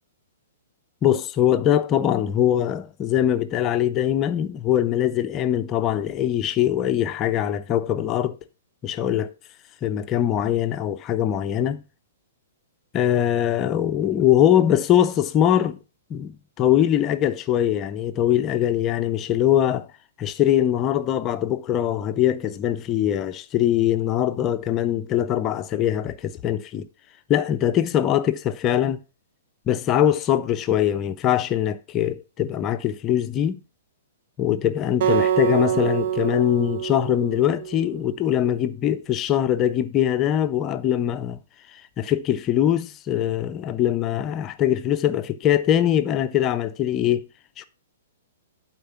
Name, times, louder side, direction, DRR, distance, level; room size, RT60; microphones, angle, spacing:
voice 1, 1.0-8.4 8.8-9.3 9.8-11.8 12.9-15.8 16.1-19.9 20.2-26.9 27.3-29.0 29.7-33.6 34.4-41.4 41.7-47.3 47.6-47.7, left 11 dB, 25° left, 0.6 m, -22 dB
Acoustic guitar, 35.0-38.3, right 9 dB, 45° right, 0.6 m, -25 dB
11.5 x 4.5 x 5.8 m
figure-of-eight pair, 115°, 0 cm